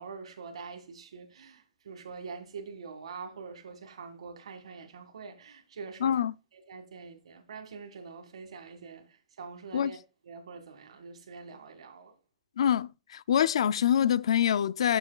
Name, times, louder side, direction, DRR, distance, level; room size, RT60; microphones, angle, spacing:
voice 1, 0.0-6.2 6.5-10.0 10.2-12.1, right 5 dB, 85° right, 1.9 m, -45 dB
voice 2, 6.0-6.3 9.7-9.9 12.6-15.0, left 9 dB, 70° left, 0.3 m, -25 dB
9.6 x 6.6 x 2.3 m
hypercardioid pair, 175°, 3 cm